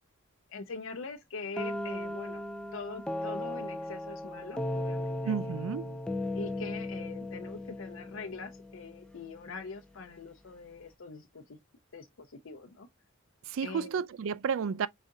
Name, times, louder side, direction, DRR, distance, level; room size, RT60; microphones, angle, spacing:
voice 1, 0.5-2.4 2.7-5.4 6.3-11.6 11.9-12.9 13.6-14.0, left 4 dB, 65° left, 0.6 m, -43 dB
sound 1, 1.6-9.3, left 1 dB, 5° left, 0.4 m, -36 dB
voice 2, 5.2-6.0 13.5-14.9, right 6 dB, 70° right, 0.3 m, -32 dB
4.9 x 3.7 x 2.6 m
head